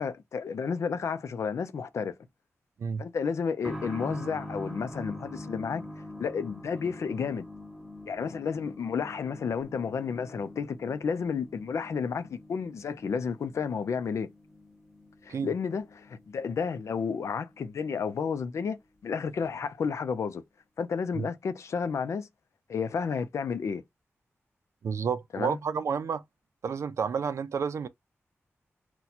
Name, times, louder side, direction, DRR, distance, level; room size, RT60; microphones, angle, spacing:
voice 1, 0.0-2.1 3.0-5.8 6.2-7.5 8.1-14.3 15.2-20.4 20.8-22.3 22.7-23.8 25.3-25.6, left 6 dB, 80° left, 0.5 m, -31 dB
sound 1, 3.6-18.1 18.3-18.4 19.4-19.5, left 1 dB, ahead, 0.8 m, -44 dB
voice 2, 24.8-26.2 26.6-27.9, right 6 dB, 75° right, 0.4 m, -30 dB
2.8 x 2.2 x 4.0 m
wide cardioid pair, 140°, 5 cm